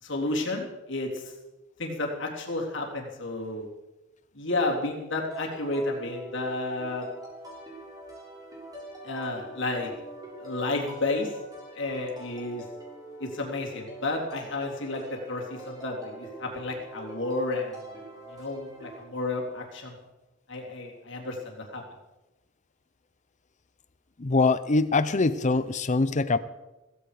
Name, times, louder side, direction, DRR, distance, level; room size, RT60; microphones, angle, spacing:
voice 1, 0.0-1.3 1.8-3.7 4.3-7.0 9.0-9.9 10.4-11.3 11.7-12.6 13.2-17.8 18.3-19.9 20.5-21.8, left 2 dB, 65° left, 0 dB, 3.4 m, -31 dB
sound 1, 5.3-19.0, right 1 dB, 20° right, 6.4 m, -44 dB
voice 2, 24.2-26.4, left 3 dB, 35° left, 15 dB, 0.7 m, -23 dB
16.0 x 16.0 x 5.0 m, 1.0 s
head